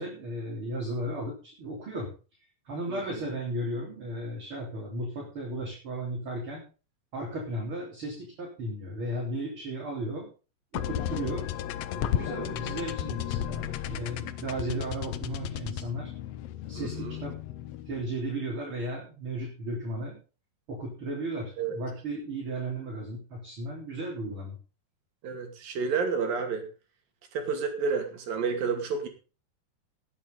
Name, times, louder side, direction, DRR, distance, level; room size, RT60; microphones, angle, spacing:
voice 1, 0.0-2.1 2.7-6.6 7.1-10.3 10.7-11.5 11.9-16.1 16.7-17.4 17.8-20.2 20.7-24.6, right 1 dB, 40° right, -2 dB, 4.3 m, -35 dB
voice 2, 2.9-3.2 12.1-12.6 16.7-17.1 21.6-21.8 25.2-26.7 27.3-29.1, right 5 dB, 85° right, 5 dB, 4.2 m, -31 dB
sound 1, 10.7-18.1, left 11 dB, 80° left, 1.4 m, -34 dB
19.0 x 8.8 x 4.0 m, 0.34 s
omnidirectional pair, 3.9 m